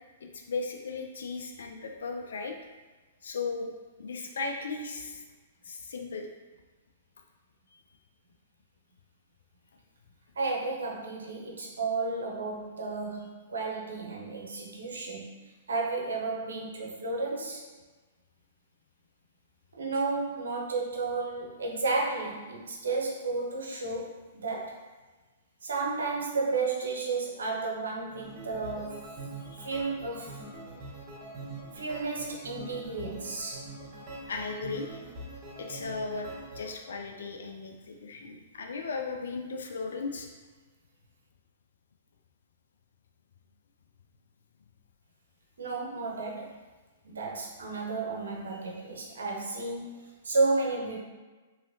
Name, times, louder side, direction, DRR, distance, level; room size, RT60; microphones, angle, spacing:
voice 1, 0.2-2.5 3.2-3.7 4.0-5.2 5.6-6.3 7.7-7.8 14.3-14.7 29.4-29.7 34.3-35.0 35.6-36.3 36.5-40.3, left 4 dB, 75° left, 3 dB, 0.4 m, -36 dB
voice 2, 10.4-17.7 19.7-24.9 25.6-29.1 29.6-30.4 31.7-33.7 45.6-46.6 47.0-51.0, right 3 dB, 80° right, -1 dB, 0.7 m, -32 dB
sound 1, 28.1-36.7, right 2 dB, 35° right, 0.9 m, -44 dB
3.0 x 2.8 x 2.7 m, 1.3 s
hypercardioid pair, 115°, 0 cm